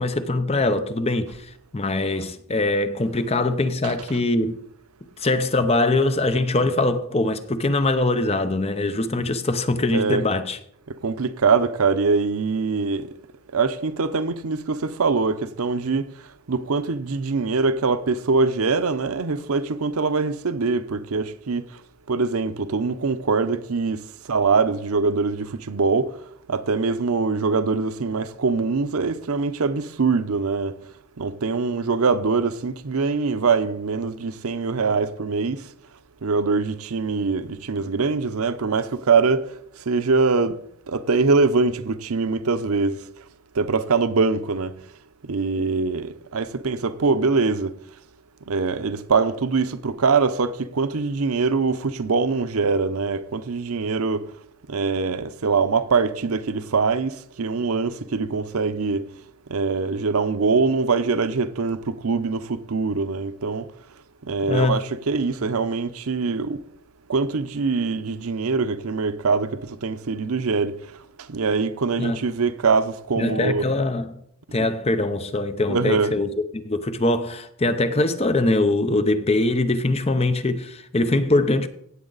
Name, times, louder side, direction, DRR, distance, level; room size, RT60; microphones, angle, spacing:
voice 1, 0.0-1.5 1.7-4.6 5.2-10.6 64.5-64.8 72.0-72.2 73.2-74.1 74.5-76.3 76.5-81.7, left 2 dB, 30° left, 0.7 m, -22 dB
voice 2, 10.9-13.1 13.5-21.8 22.1-26.2 26.5-30.8 31.2-35.7 36.2-39.5 39.8-40.6 40.9-43.2 43.5-44.8 45.2-47.8 48.5-54.3 54.7-59.1 59.5-63.7 64.2-66.6 67.1-70.8 71.2-73.6 75.7-76.1, right 4 dB, 80° right, 0.7 m, -23 dB
16.5 x 7.3 x 4.0 m
head